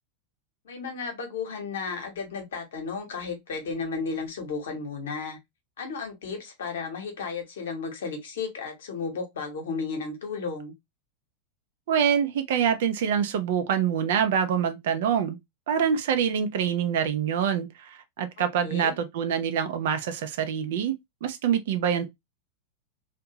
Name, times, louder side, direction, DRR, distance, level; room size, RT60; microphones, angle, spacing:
voice 1, 0.6-5.4 5.8-10.7 18.6-18.9, left 4 dB, 60° left, 0.9 m, -33 dB
voice 2, 11.9-15.4 15.7-20.9 21.2-22.1, right 8 dB, 55° right, 0.4 m, -25 dB
2.6 x 2.1 x 2.7 m
figure-of-eight pair, 90°, 0 cm